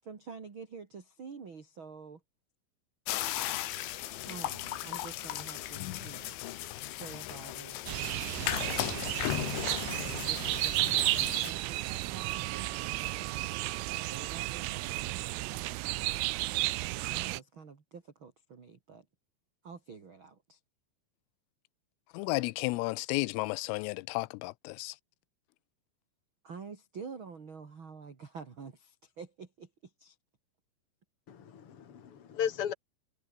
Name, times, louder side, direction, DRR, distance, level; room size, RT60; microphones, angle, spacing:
voice 1, 0.0-2.2 4.2-6.3 6.9-9.0 10.2-13.4 14.0-15.0 15.4-15.9 17.0-19.1 19.6-20.6 26.4-30.2, right 5 dB, 35° right, 2.3 m, -48 dB
sound 1, 3.1-11.5, left 15 dB, 70° left, 3.6 m, -36 dB
sound 2, 7.9-17.4, right 19 dB, 80° right, 3.5 m, -33 dB
voice 2, 22.1-25.0, left 23 dB, 90° left, 3.3 m, -33 dB
voice 3, 31.3-32.7, left 9 dB, 40° left, 2.3 m, -35 dB
omnidirectional pair, 5.8 m